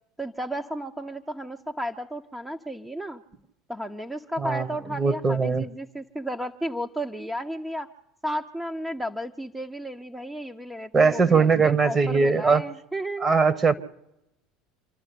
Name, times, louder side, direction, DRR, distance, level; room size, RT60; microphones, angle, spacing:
voice 1, 0.2-3.2 3.7-7.9 8.2-13.3, equal, 5° right, 4 dB, 1.0 m, -33 dB
voice 2, 5.0-5.6 10.9-12.6 13.2-13.7, right 4 dB, 25° right, 14 dB, 1.5 m, -20 dB
27.0 x 12.0 x 8.5 m, 0.86 s
hypercardioid pair, 75°, 0 cm